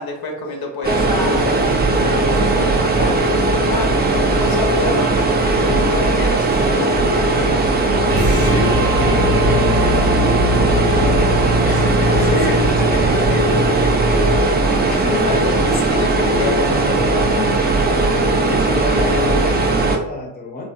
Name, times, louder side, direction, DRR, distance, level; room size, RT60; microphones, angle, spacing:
voice 1, 0.0-8.0 11.6-12.6 14.9-16.9 18.9-19.3, left 3 dB, 50° left, 1 dB, 0.9 m, -29 dB
sound 1, 0.8-20.0, right 2 dB, 20° right, 0.5 m, -17 dB
voice 2, 1.5-2.1 5.5-6.0 7.6-7.7 8.1-11.6 12.0-14.9 16.1-18.0 18.5-20.7, left 3 dB, 20° left, -1 dB, 0.7 m, -28 dB
sound 2, 8.1-14.4, right 1 dB, 55° right, 0.9 m, -21 dB
3.2 x 2.5 x 2.3 m, 0.78 s
hypercardioid pair, 45°, 47 cm